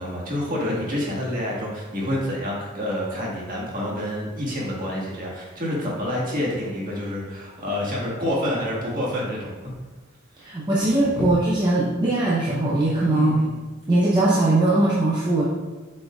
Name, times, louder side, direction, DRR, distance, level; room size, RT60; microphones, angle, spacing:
voice 1, 0.0-9.7 10.4-10.5 11.1-11.3 13.1-13.5, left 1 dB, 40° right, -4 dB, 1.7 m, -28 dB
voice 2, 10.4-13.5 13.9-15.4, right 2 dB, 20° right, -7 dB, 0.8 m, -20 dB
7.7 x 5.3 x 2.4 m, 1.2 s
head